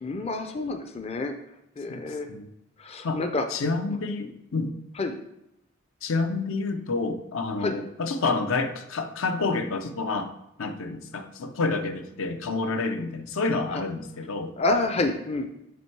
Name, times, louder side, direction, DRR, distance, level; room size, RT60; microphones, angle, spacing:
voice 1, 0.0-1.4 1.8-2.3 2.8-3.5 3.9-4.0 5.0-5.2 7.6-7.8 13.7-13.8 14.6-15.5, left 2 dB, 30° left, 7 dB, 0.4 m, -28 dB
voice 2, 1.9-2.5 3.0-3.2 3.5-4.8 6.0-10.3 10.6-14.5, left 3 dB, 80° left, 7 dB, 0.6 m, -29 dB
7.3 x 3.4 x 4.5 m, 0.82 s
head